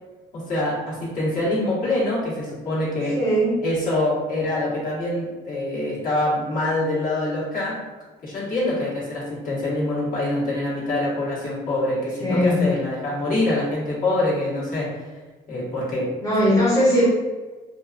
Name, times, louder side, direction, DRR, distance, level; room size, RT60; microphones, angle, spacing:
voice 1, 0.3-3.2 3.6-7.8 8.2-15.1 15.5-16.2, left 1 dB, 55° left, -7 dB, 1.4 m, -25 dB
voice 2, 3.2-3.7 12.2-12.8 16.2-17.1, equal, 20° left, -8 dB, 0.8 m, -19 dB
2.6 x 2.5 x 2.4 m, 1.3 s
cardioid pair, 110°, 17 cm